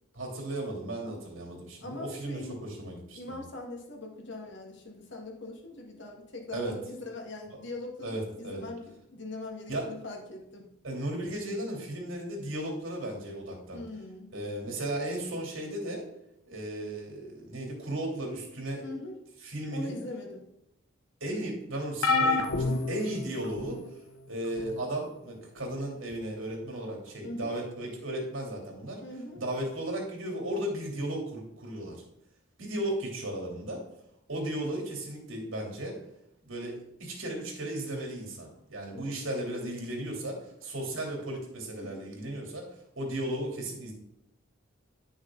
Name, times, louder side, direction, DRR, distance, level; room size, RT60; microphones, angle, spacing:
voice 1, 0.1-3.4 6.5-6.7 7.5-7.6 8.0-8.6 9.7-9.9 10.8-13.8 14.3-16.0 16.5-18.8 19.4-20.0 21.2-23.8 24.3-29.0 29.3-32.0 32.6-33.8 34.3-36.0 36.4-42.7 42.9-43.9, right 1 dB, 80° right, -1 dB, 3.2 m, -35 dB
voice 2, 1.8-2.6 3.1-10.7 13.7-14.3 18.8-19.2 19.7-20.4 22.6-22.9 27.2-27.6 29.0-29.4 38.9-39.1 41.8-42.0, left 2 dB, 60° left, 1 dB, 1.8 m, -41 dB
sound 1, 22.0-23.8 24.6-24.8 26.1-26.2, left 3 dB, 90° left, 0.9 m, -28 dB
11.0 x 6.4 x 3.9 m, 0.80 s
head